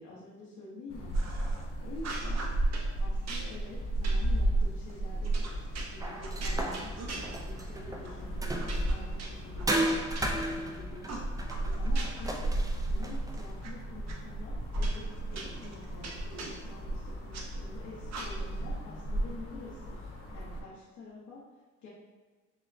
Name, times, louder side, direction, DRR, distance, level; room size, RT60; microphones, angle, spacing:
voice 1, 0.0-2.5 3.0-5.5 5.9-12.4 12.7-20.0 20.3-21.4 21.8-21.9, left 2 dB, 75° left, -5 dB, 0.9 m, -48 dB
sound 1, 0.9-20.6, right 1 dB, 45° left, 0.9 m, -34 dB
sound 2, 1.1-1.6 2.0-2.9 3.3-7.7 8.0-8.2 8.6-10.7 11.1-12.4 12.7-13.7 14.1-14.2 14.7-17.5 18.1-18.6, right 3 dB, 60° right, 0.7 m, -43 dB
sound 3, 6.0-9.0 9.7-13.5, right 1 dB, 10° right, 0.4 m, -35 dB
6.0 x 2.1 x 2.6 m, 1.4 s
cardioid pair, 90°, 30 cm